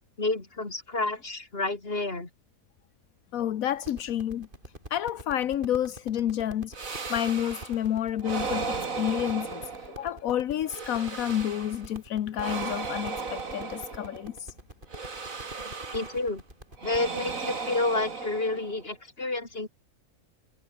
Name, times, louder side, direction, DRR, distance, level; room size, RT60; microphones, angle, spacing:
voice 1, 0.2-2.3 15.9-16.4 16.8-19.7, left 2 dB, 40° left, 3.7 m, -30 dB
voice 2, 3.3-4.5 4.9-9.6 10.0-14.5, left 11 dB, 80° left, 1.3 m, -30 dB
sound 1, 3.7-17.4, right 1 dB, 35° right, 8.0 m, -46 dB
sound 2, 6.7-7.8 8.2-10.2 10.7-11.9 12.3-14.3 14.9-16.3 16.8-18.9, right 4 dB, 70° right, 3.0 m, -36 dB
omnidirectional pair, 1.5 m